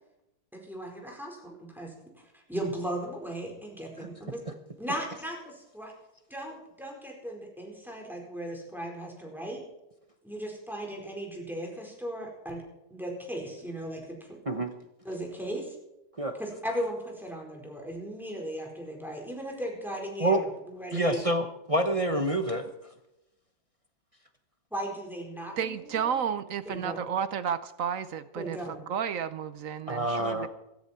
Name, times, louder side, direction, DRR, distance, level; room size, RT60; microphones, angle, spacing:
voice 1, 0.5-2.0 2.3-4.4 4.8-5.9 6.3-9.6 10.2-12.6 12.9-14.4 15.0-15.8 16.3-21.2 24.7-26.1 26.8-27.0 28.4-28.8, right 1 dB, ahead, 0 dB, 4.5 m, -37 dB
voice 2, 20.9-22.7 29.9-30.5, right 1 dB, 30° right, 6 dB, 0.7 m, -27 dB
voice 3, 25.6-30.5, right 8 dB, 60° right, 13 dB, 0.9 m, -32 dB
16.5 x 14.0 x 4.4 m, 0.90 s
omnidirectional pair, 2.0 m